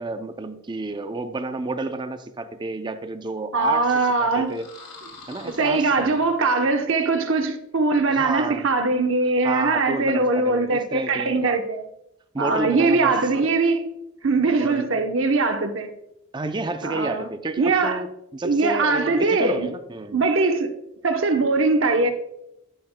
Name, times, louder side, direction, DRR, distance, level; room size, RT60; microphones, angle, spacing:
voice 1, 0.0-3.9 4.2-4.7 5.3-6.1 8.1-8.6 9.4-11.6 12.3-13.2 14.6-14.8 16.3-20.2, right 2 dB, 20° right, 0.5 m, -30 dB
voice 2, 3.5-4.5 5.4-11.8 12.4-13.8 14.2-15.9 16.8-17.3 17.6-18.0 18.4-19.7 20.1-20.7 21.0-22.1, right 3 dB, 70° right, 0.9 m, -21 dB
sound 1, 4.4-6.7, left 3 dB, 85° left, 2.2 m, -45 dB
11.0 x 9.0 x 2.2 m
head